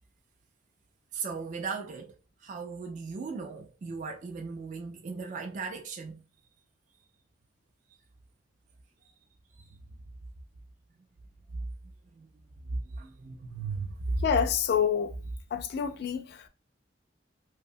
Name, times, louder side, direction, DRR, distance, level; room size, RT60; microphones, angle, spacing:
voice 1, 1.1-6.2 9.6-9.8 11.5-11.6 12.1-12.3 12.7-14.2, right 4 dB, 45° right, 0.3 m, -36 dB
voice 2, 14.2-15.1 15.5-16.4, left 7 dB, 60° left, 0.3 m, -27 dB
2.7 x 2.1 x 2.6 m
head